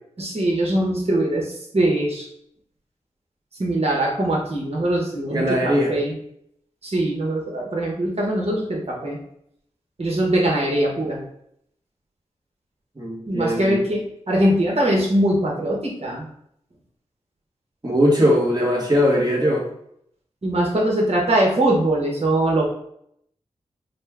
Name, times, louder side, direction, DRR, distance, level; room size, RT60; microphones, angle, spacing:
voice 1, 0.2-2.2 3.6-6.1 6.8-9.2 10.0-11.2 13.3-16.3 20.4-22.6, right 1 dB, 50° right, -2 dB, 1.4 m, -22 dB
voice 2, 5.3-5.9 13.0-13.8 17.8-19.7, equal, 30° right, -3 dB, 1.5 m, -20 dB
4.1 x 2.3 x 3.6 m, 0.71 s
cardioid pair, 45°, 13 cm